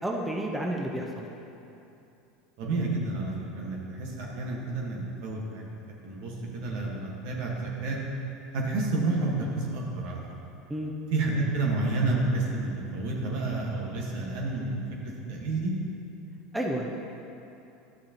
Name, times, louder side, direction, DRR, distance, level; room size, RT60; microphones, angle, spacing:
voice 1, 0.0-1.2 10.7-10.9 16.5-17.0, right 1 dB, 5° right, -1 dB, 0.9 m, -31 dB
voice 2, 2.6-8.0 8.5-10.2 11.1-15.7, right 2 dB, 65° right, -2 dB, 1.4 m, -30 dB
11.0 x 6.4 x 2.9 m, 2.8 s
hypercardioid pair, 85°, 0 cm